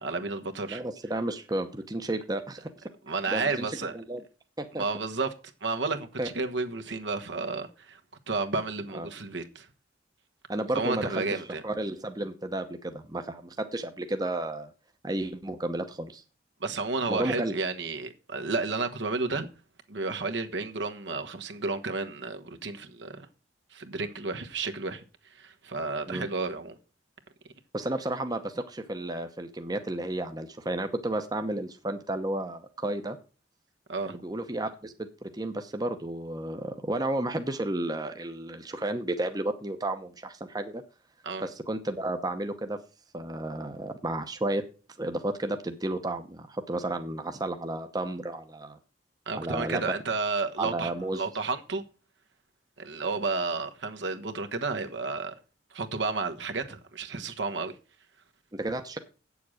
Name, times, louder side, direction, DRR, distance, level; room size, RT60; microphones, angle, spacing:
voice 1, 0.0-0.8 3.1-3.9 4.8-5.3 5.6-8.0 8.3-9.7 10.7-11.6 16.6-19.5 19.9-23.3 23.7-25.0 25.4-26.8 33.9-34.2 41.2-41.5 49.3-51.8 52.8-55.3 55.7-57.7, right 3 dB, 70° right, 1.2 m, -32 dB
voice 2, 0.7-2.7 3.3-4.2 4.6-4.8 6.2-6.3 8.9-9.1 10.5-14.7 15.0-16.2 17.1-17.5 26.1-26.3 27.7-33.2 34.0-34.9 35.2-40.8 41.4-42.8 43.1-44.6 45.0-48.8 49.3-49.9 50.6-51.2 58.5-59.0, right 1 dB, 20° right, 0.8 m, -32 dB
8.6 x 7.1 x 6.4 m
head